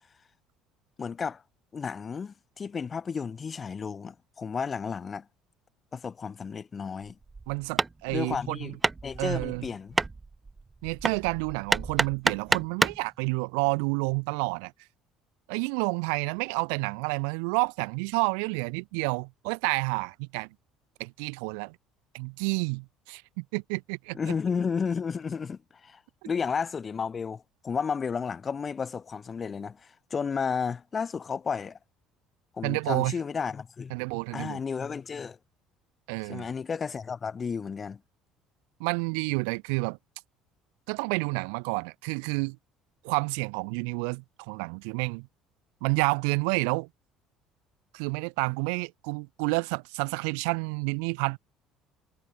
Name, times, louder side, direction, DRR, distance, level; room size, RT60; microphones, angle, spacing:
voice 1, 1.0-1.4 1.7-5.2 5.9-7.2 8.1-8.8 9.0-10.0 24.1-26.0 26.3-31.8 32.6-33.9 34.3-35.4 36.3-38.0, left 6 dB, 35° left, 7.2 m, -32 dB
Hammer, 7.2-13.1, right 3 dB, 20° right, 2.2 m, -30 dB
voice 2, 7.5-8.7 9.2-9.6 10.8-14.7 15.5-20.5 21.0-21.8 22.1-24.2 32.6-33.1 33.9-34.6 36.1-36.5 38.8-40.0 40.9-42.6 43.0-45.3 45.8-46.9 47.9-51.4, right 40 dB or more, 80° right, 1.1 m, -29 dB
hypercardioid pair, 70°, 0 cm